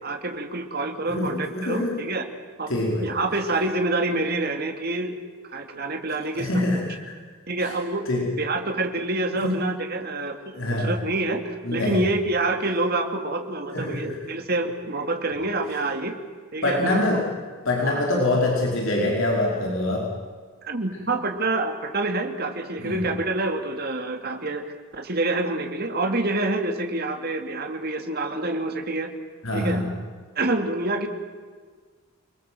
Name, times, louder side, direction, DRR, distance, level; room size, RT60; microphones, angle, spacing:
voice 1, 0.0-2.3 2.6-2.7 3.0-5.2 5.5-6.5 7.5-8.1 8.4-16.1 16.5-17.0 17.8-18.0 20.6-24.6 24.9-29.1 29.5-29.8 30.4-31.1, right 2 dB, 45° right, 5 dB, 2.7 m, -27 dB
voice 2, 1.0-2.0 2.7-3.1 6.3-7.1 7.6-7.7 8.1-8.3 9.3-9.6 10.5-11.0 11.6-12.0 13.7-14.2 16.6-17.3 17.6-20.1 22.8-23.0 29.4-29.9, left 1 dB, 65° left, -1 dB, 5.0 m, -25 dB
29.5 x 21.0 x 7.8 m, 1.5 s
head